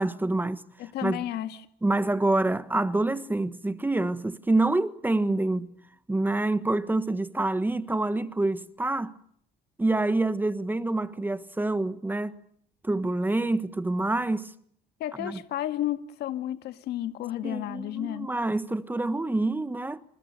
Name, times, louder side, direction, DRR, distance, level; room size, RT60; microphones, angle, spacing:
voice 1, 0.0-0.6 1.0-1.2 1.8-5.7 6.1-9.2 9.8-12.4 12.8-14.5 15.2-15.4 17.4-20.0, right 2 dB, 10° right, 1.4 m, -27 dB
voice 2, 0.8-1.7 15.0-18.3, left 13 dB, 75° left, 1.9 m, -32 dB
28.0 x 28.0 x 6.6 m
cardioid pair, 110°, 17 cm